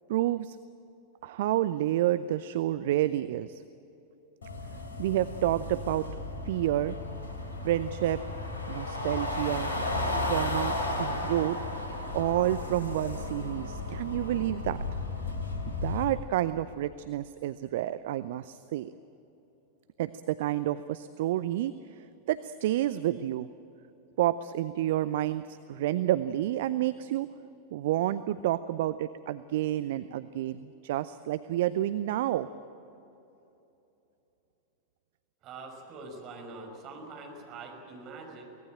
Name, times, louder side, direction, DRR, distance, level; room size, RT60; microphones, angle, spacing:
voice 1, 0.1-0.6 1.2-3.6 5.0-6.1 6.4-7.0 7.6-8.2 8.7-9.7 10.2-11.6 12.1-14.9 15.7-18.9 20.0-23.5 24.2-27.3 27.7-32.5, right 13 dB, 55° right, 14 dB, 0.5 m, -29 dB
sound 1, 4.4-16.0, left 2 dB, 70° left, 3.3 m, -34 dB
voice 2, 35.4-38.4, right 3 dB, 35° right, 2 dB, 5.5 m, -44 dB
24.0 x 18.5 x 8.9 m, 2.9 s
figure-of-eight pair, 90°, 0 cm